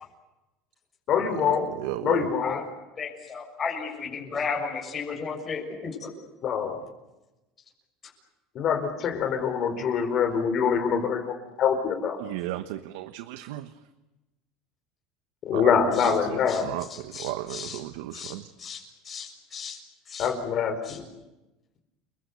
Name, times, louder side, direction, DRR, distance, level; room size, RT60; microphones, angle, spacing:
voice 1, 1.1-1.7 2.0-2.6 6.4-6.8 8.5-12.2 15.5-16.7 20.2-21.0, left 7 dB, 45° left, 7 dB, 4.7 m, -25 dB
voice 2, 1.7-2.3 12.2-13.7 15.5-15.7 16.0-16.4 16.6-18.4, right 15 dB, 80° right, 10 dB, 1.2 m, -34 dB
voice 3, 3.0-6.1 16.0-16.1 16.5-16.6 16.9-17.8 18.1-19.8 20.1-20.3 20.9-21.0, left 5 dB, 25° left, -1 dB, 7.0 m, -34 dB
29.5 x 22.5 x 8.2 m, 1.0 s
supercardioid pair, 130°, 0 cm